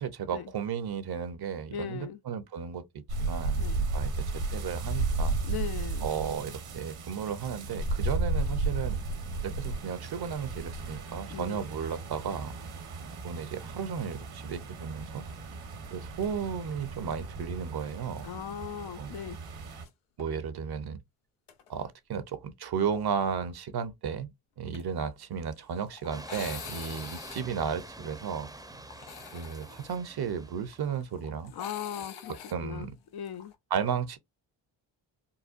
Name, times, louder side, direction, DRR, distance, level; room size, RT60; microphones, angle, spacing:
voice 1, 0.0-3.6 3.9-5.4 6.0-9.0 9.4-12.5 13.2-15.2 15.9-18.3 19.0-19.1 20.2-21.0 21.7-24.3 24.6-28.5 29.3-31.5 32.5-32.9 33.7-34.2, right 7 dB, 50° right, 0.8 m, -34 dB
voice 2, 1.7-2.2 3.6-3.8 5.4-6.1 11.3-11.7 18.2-19.4 31.5-33.5, left 9 dB, 50° left, 0.5 m, -38 dB
sound 1, 3.1-19.8, right 3 dB, 75° right, 1.3 m, -34 dB
sound 2, 19.6-19.9 20.2-20.3 21.5-21.7 24.7-33.6, left 8 dB, 85° left, 0.7 m, -47 dB
sound 3, 26.1-31.0, right 2 dB, 10° right, 0.6 m, -46 dB
4.0 x 2.2 x 2.5 m
supercardioid pair, 50°, 49 cm